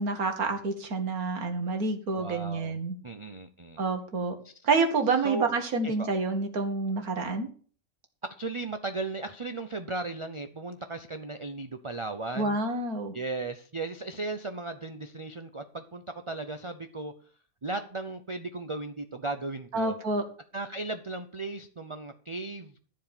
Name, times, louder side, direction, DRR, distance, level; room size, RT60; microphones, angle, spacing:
voice 1, 0.0-3.0 3.8-4.4 4.6-7.5 12.4-13.1 19.7-20.2, right 3 dB, 80° right, 6 dB, 2.2 m, -28 dB
voice 2, 2.2-2.8 3.0-3.9 4.4-4.5 5.2-5.5 5.8-6.1 8.2-12.6 13.1-17.1 17.6-20.0 20.5-22.7, right 3 dB, 30° right, 8 dB, 0.6 m, -36 dB
13.5 x 4.8 x 8.8 m, 0.43 s
omnidirectional pair, 1.5 m